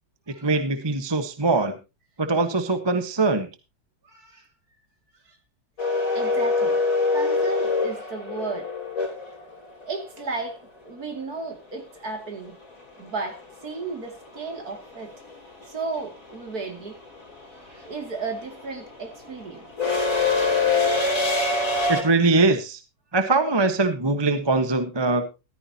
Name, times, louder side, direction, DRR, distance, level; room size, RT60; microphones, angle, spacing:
voice 1, 0.4-1.8 2.2-3.5 21.9-22.8 23.1-25.2, right 3 dB, 15° right, 1.0 m, -22 dB
voice 2, 4.0-4.5 5.3-5.4 6.1-6.8 7.1-8.7 9.8-12.6 13.0-15.1 15.7-17.0 17.5-19.6, right 4 dB, 50° right, 2.9 m, -34 dB
sound 1, 5.8-9.8 12.3-12.4 13.7-14.0 14.2-22.0, left 3 dB, 45° left, 3.6 m, -24 dB
15.0 x 13.5 x 2.8 m
omnidirectional pair, 2.0 m